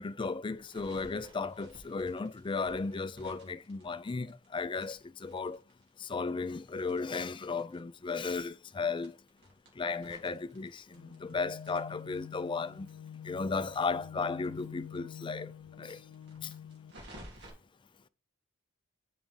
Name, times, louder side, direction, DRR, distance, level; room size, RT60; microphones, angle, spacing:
voice 1, 0.0-5.6 6.0-9.1 9.8-12.9 13.2-15.5 15.8-16.0 16.4-16.5, left 4 dB, 25° left, 0.4 m, -35 dB
sound 1, 0.6-4.5 4.8-7.8 8.1-8.2 8.4-8.5 8.9-11.3 11.6-14.6 14.9-15.0 15.3-15.4 15.8-17.5, right 1 dB, 55° right, 3.5 m, -55 dB
sound 2, 10.9-16.9, left 8 dB, 90° left, 0.4 m, -47 dB
7.5 x 5.0 x 4.8 m
head